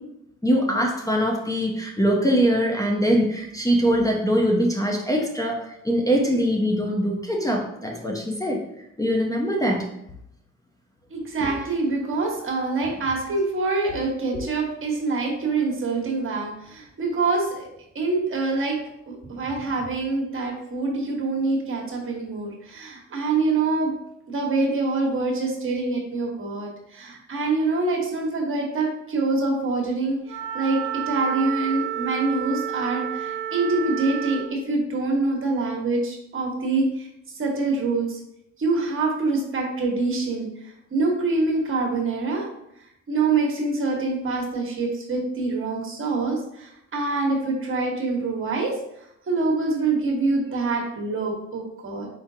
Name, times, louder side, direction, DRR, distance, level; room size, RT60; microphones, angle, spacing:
voice 1, 0.4-8.6 9.0-9.9, equal, 10° left, -1 dB, 0.7 m, -22 dB
voice 2, 11.1-17.7 17.9-18.8 19.1-23.9 24.3-38.2 38.6-40.5 40.9-42.5 43.1-48.7 49.3-52.1, right 3 dB, 45° right, 1 dB, 1.2 m, -25 dB
Wind instrument woodwind instrument, 30.3-34.6, right 11 dB, 90° right, 0.5 m, -30 dB
4.8 x 3.6 x 2.7 m, 0.79 s
cardioid pair, 90°, 30 cm